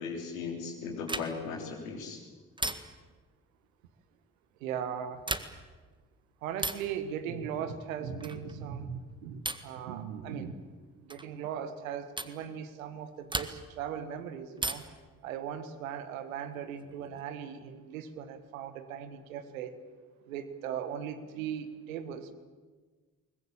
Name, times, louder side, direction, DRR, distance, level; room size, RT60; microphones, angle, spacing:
voice 1, 0.0-2.2, left 5 dB, 75° left, 1 dB, 3.7 m, -37 dB
sound 1, 1.0-1.6 2.6-3.2 5.1-5.8 6.6-7.0 8.2-8.5 9.4-9.8 11.1-11.3 12.2-12.4 13.3-13.8 14.6-15.1 16.5-17.2, right 2 dB, 10° right, 1.8 m, -37 dB
voice 2, 4.6-5.3 6.4-10.5 11.0-14.8 15.2-19.8 20.3-22.3, right 8 dB, 75° right, 10 dB, 1.6 m, -38 dB
22.0 x 20.5 x 8.7 m, 1.4 s
figure-of-eight pair, 40°, 41 cm